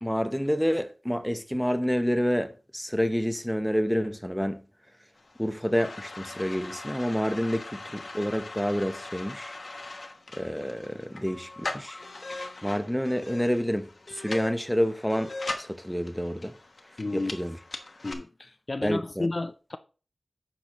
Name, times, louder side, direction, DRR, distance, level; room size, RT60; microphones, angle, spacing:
voice 1, 0.0-4.6 5.4-9.5 10.3-12.0 12.6-15.3 15.6-16.6 17.1-17.6 18.8-19.3, equal, ahead, 0.7 m, -28 dB
sound 1, 5.2-18.1, left 2 dB, 60° left, 1.1 m, -40 dB
voice 2, 17.0-17.3 18.0-19.8, left 2 dB, 45° left, 0.4 m, -32 dB
9.6 x 6.1 x 3.0 m
wide cardioid pair, 75°, 0 cm